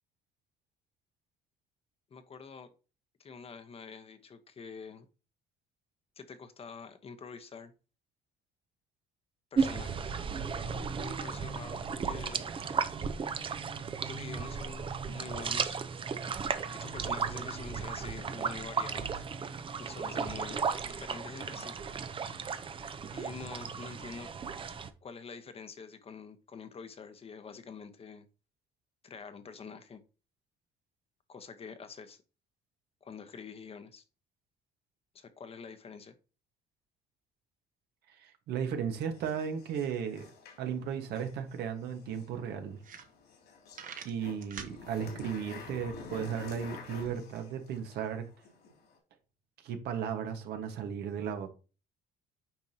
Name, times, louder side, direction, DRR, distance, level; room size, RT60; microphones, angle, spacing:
voice 1, 2.1-2.7 3.2-5.1 6.2-7.7 9.5-10.2 10.9-12.4 14.0-15.8 16.7-19.3 19.8-21.7 23.1-24.3 25.0-28.3 29.0-30.0 31.3-32.2 33.0-34.0 35.1-36.1, left 5 dB, 35° left, 1.0 m, -46 dB
sound 1, 9.6-24.9, right 5 dB, 30° right, 0.7 m, -35 dB
voice 2, 38.2-40.3 40.6-42.8 44.0-48.3 49.6-51.5, right 7 dB, 75° right, 1.4 m, -35 dB
sound 2, 39.1-49.0, left 5 dB, 75° left, 3.0 m, -50 dB
sound 3, 41.8-41.9 42.4-42.5 42.8-43.5 43.7-44.8, right 7 dB, 55° right, 1.2 m, -44 dB
8.9 x 5.2 x 2.8 m
cardioid pair, 110°, 17 cm